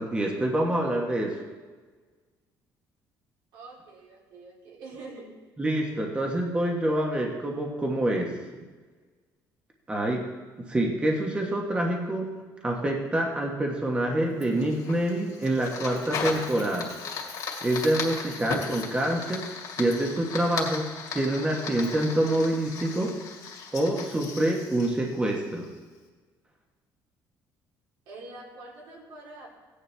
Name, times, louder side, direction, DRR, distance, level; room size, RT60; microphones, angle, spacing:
voice 1, 0.0-1.4 5.6-8.6 9.9-10.2 10.7-12.3 12.6-16.9 17.6-19.5 19.8-23.1 23.7-25.7, right 1 dB, 15° right, 0 dB, 1.3 m, -26 dB
voice 2, 3.5-5.3 28.1-29.5, right 3 dB, 85° right, -3 dB, 3.5 m, -45 dB
Fire, 14.4-25.8, left 5 dB, 50° left, 2.2 m, -37 dB
16.5 x 9.7 x 3.4 m, 1.4 s
cardioid pair, 155°, 8 cm